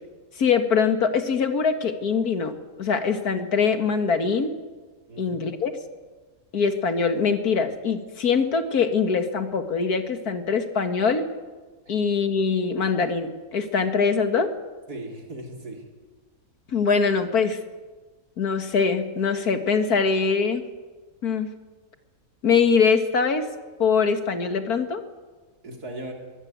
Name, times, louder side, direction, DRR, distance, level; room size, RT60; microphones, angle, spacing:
voice 1, 0.4-4.5 5.2-5.7 6.5-11.3 11.9-14.5 16.7-17.6 18.4-20.6 21.2-21.5 22.4-23.5 23.8-25.0, left 5 dB, 75° left, 8 dB, 2.3 m, -23 dB
voice 2, 5.1-5.4 11.9-12.0 14.9-15.8 25.6-26.1, right 1 dB, 90° right, 2 dB, 4.5 m, -37 dB
22.5 x 18.0 x 9.5 m, 1.3 s
omnidirectional pair, 1.6 m